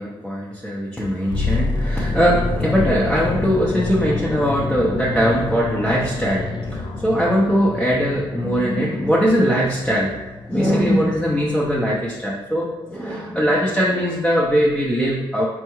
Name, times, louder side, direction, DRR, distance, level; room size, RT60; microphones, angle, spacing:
voice 1, 0.0-10.2 10.5-15.4, equal, 5° left, -6 dB, 0.6 m, -20 dB
sound 1, 1.3-11.3 11.5-11.8, left 3 dB, 50° left, 0.5 m, -28 dB
4.2 x 2.3 x 3.0 m, 1.1 s
cardioid pair, 95°, 10 cm